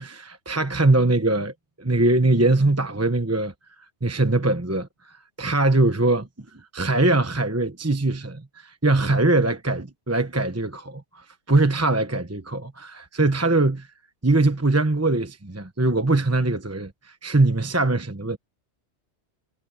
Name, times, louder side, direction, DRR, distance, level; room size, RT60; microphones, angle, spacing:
voice 1, 0.0-3.5 4.0-6.5 6.7-13.9 14.2-18.4, right 2 dB, 15° right, 1.0 m, -22 dB
omnidirectional pair, 1.2 m